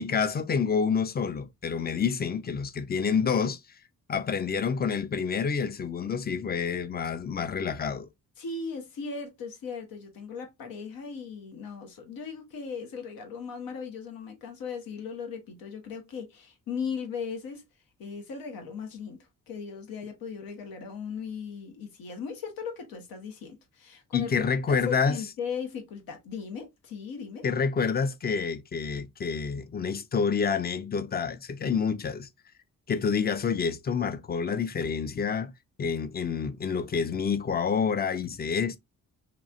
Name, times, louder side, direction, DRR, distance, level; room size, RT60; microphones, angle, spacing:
voice 1, 0.0-3.6 4.1-8.1 24.1-25.2 27.4-32.3 32.9-35.5 35.8-38.8, left 6 dB, 30° left, 0.4 m, -28 dB
voice 2, 8.4-17.6 18.0-19.2 19.5-24.3 24.7-27.4, left 6 dB, 85° left, 1.0 m, -37 dB
3.0 x 2.4 x 2.5 m
cardioid pair, 80°, 34 cm